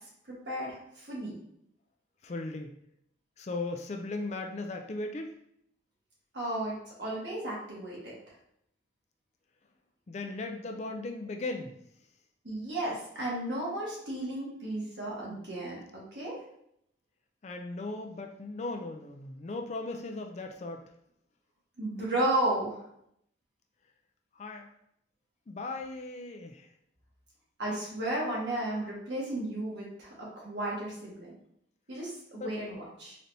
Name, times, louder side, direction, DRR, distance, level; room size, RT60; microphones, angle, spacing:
voice 1, 0.3-1.3 6.3-6.7 7.0-8.1 12.4-16.4 21.8-22.8 27.6-31.3 31.9-33.2, right 1 dB, 65° right, -5 dB, 1.5 m, -33 dB
voice 2, 2.2-2.8 3.4-5.4 10.1-11.7 17.4-20.8 24.4-24.7 25.5-26.7 32.3-32.5, left 2 dB, 35° left, 4 dB, 0.3 m, -37 dB
4.0 x 3.3 x 2.6 m, 0.73 s
head